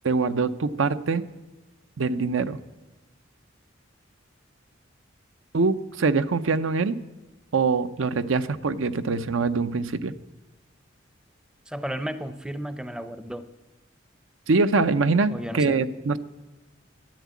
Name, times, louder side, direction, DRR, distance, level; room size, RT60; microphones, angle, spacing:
voice 1, 0.0-1.2 2.0-2.6 5.5-7.0 7.5-10.1 14.5-16.2, right 4 dB, 85° right, 12 dB, 0.6 m, -23 dB
voice 2, 11.7-13.5 15.3-15.8, equal, 5° right, 11 dB, 0.5 m, -33 dB
12.0 x 10.0 x 8.3 m, 1.2 s
head